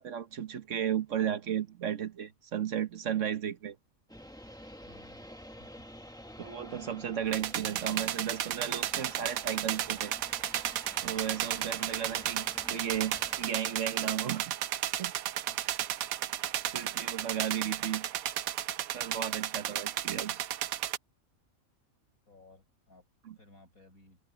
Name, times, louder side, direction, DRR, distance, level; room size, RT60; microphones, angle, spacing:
voice 1, 0.0-3.8 6.4-10.1 11.0-14.5 15.0-15.1 16.7-18.1 18.9-20.4 23.3-23.4, right 9 dB, 65° right, 1.4 m, -34 dB
sound 1, 4.1-13.5, equal, 5° left, 1.1 m, -49 dB
voice 2, 4.8-5.2 5.6-5.9 11.6-11.8 15.4-15.6 22.3-24.2, left 2 dB, 90° left, 8.0 m, -59 dB
sound 2, 7.3-21.0, right 11 dB, 85° right, 1.1 m, -34 dB
omnidirectional pair, 1.4 m